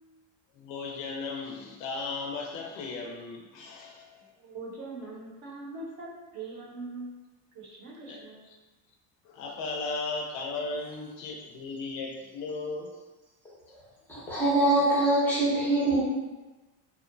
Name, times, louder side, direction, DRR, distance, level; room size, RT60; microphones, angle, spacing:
voice 1, 0.5-4.3 8.1-8.2 9.2-12.9, left 3 dB, 75° left, -1 dB, 0.5 m, -36 dB
voice 2, 4.4-7.1 7.5-8.5, right 3 dB, 45° right, -3 dB, 0.6 m, -41 dB
voice 3, 14.1-16.0, right 2 dB, 5° left, -9 dB, 0.5 m, -24 dB
2.6 x 2.1 x 2.5 m, 1.2 s
cardioid pair, 165°, 42 cm